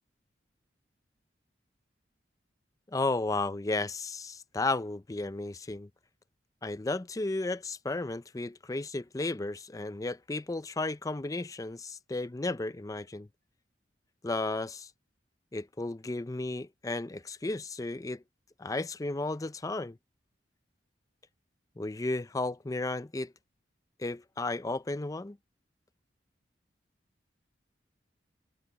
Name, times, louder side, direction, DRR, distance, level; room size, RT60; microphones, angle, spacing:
voice 1, 2.9-5.9 6.6-13.3 14.2-14.9 15.5-18.2 18.6-20.0 21.8-23.3 24.0-25.4, left 2 dB, 20° left, 0.5 m, -33 dB
head